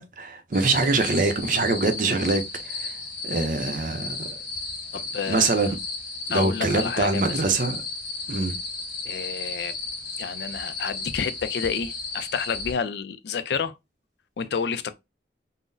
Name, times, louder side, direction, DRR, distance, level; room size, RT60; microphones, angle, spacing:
voice 1, 0.0-2.9 3.2-4.3 5.3-5.7 6.3-7.8 8.3-8.6, right 3 dB, 50° right, 0.5 m, -24 dB
sound 1, 0.5-12.7, left 3 dB, 55° left, 1.3 m, -34 dB
voice 2, 4.9-5.7 6.3-7.4 9.0-9.8 10.2-13.7 14.4-14.9, left 6 dB, 75° left, 0.4 m, -29 dB
3.8 x 2.0 x 2.5 m
head